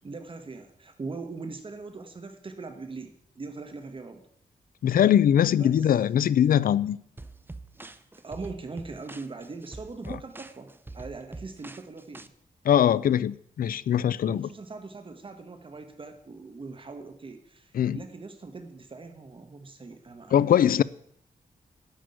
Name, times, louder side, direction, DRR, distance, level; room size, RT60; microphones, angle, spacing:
voice 1, 0.0-4.2 5.6-5.9 8.2-12.3 14.2-20.8, right 3 dB, 35° right, 1.3 m, -41 dB
voice 2, 4.8-7.0 10.1-10.2 12.6-14.5 17.7-18.0 20.3-20.8, left 10 dB, 75° left, 0.4 m, -22 dB
sound 1, 7.2-12.3, right 3 dB, 15° right, 0.6 m, -44 dB
11.0 x 6.1 x 9.1 m
wide cardioid pair, 130°, 15 cm